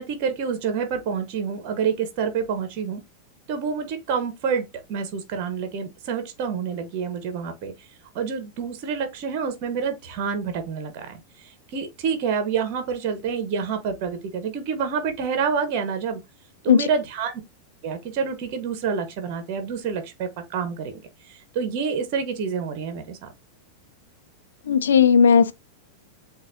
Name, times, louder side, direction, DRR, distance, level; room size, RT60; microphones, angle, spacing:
voice 1, 0.0-3.0 3.5-7.7 8.1-16.2 16.6-17.3 17.8-23.3, right 6 dB, 45° right, 1.1 m, -28 dB
voice 2, 24.7-25.5, left 7 dB, 65° left, 0.4 m, -16 dB
7.4 x 2.6 x 2.6 m
figure-of-eight pair, 90°, 0 cm